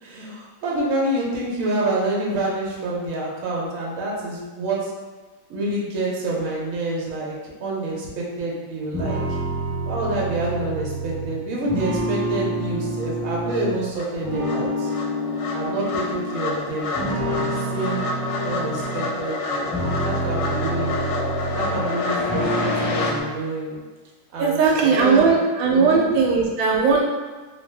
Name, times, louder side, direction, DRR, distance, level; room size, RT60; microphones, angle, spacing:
voice 1, 0.0-4.9 5.5-7.3 7.6-9.2 9.9-14.9 15.5-18.0 18.4-20.9 21.5-23.8 24.3-25.3 25.7-26.4, right 2 dB, 60° right, -4 dB, 0.9 m, -27 dB
sound 1, 8.9-13.8 14.2-16.5 16.9-19.1 19.5-22.0 22.3-23.2, right 1 dB, 15° left, 0.7 m, -27 dB
sound 2, 13.0-13.1 13.5-23.1, left 3 dB, 75° left, 1.1 m, -28 dB
voice 2, 24.4-27.1, right 5 dB, 80° right, -1 dB, 1.3 m, -18 dB
2.9 x 2.6 x 3.2 m, 1.3 s
omnidirectional pair, 2.1 m